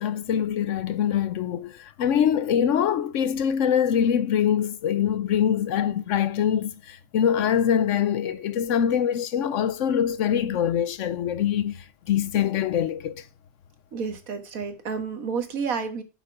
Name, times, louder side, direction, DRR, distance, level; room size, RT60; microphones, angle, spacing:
voice 1, 0.0-13.1, left 9 dB, 70° left, 0.9 m, -24 dB
voice 2, 13.9-16.0, right 5 dB, 80° right, 1.8 m, -30 dB
8.1 x 5.8 x 5.8 m
omnidirectional pair, 1.5 m